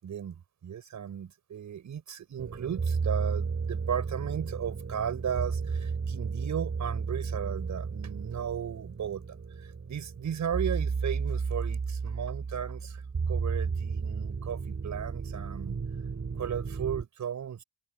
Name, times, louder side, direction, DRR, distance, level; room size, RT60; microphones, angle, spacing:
voice 1, 0.0-9.2 9.6-13.0 13.3-15.8 16.4-17.6, right 8 dB, 70° right, 6.4 m, -35 dB
sound 1, 2.4-17.0, right 5 dB, 50° right, 7.5 m, -33 dB
supercardioid pair, 45°, 30 cm